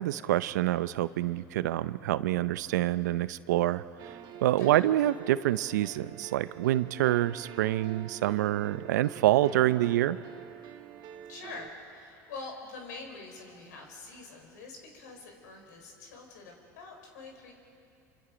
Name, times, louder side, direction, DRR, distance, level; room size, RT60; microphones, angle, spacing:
voice 1, 0.0-3.8 4.4-10.2, right 14 dB, 85° right, 16 dB, 0.6 m, -26 dB
sound 1, 4.0-11.7, right 10 dB, 50° right, 1.8 m, -47 dB
voice 2, 11.1-17.5, left 3 dB, 85° left, 2 dB, 4.6 m, -45 dB
28.0 x 25.5 x 5.1 m, 2.6 s
hypercardioid pair, 90°, 9 cm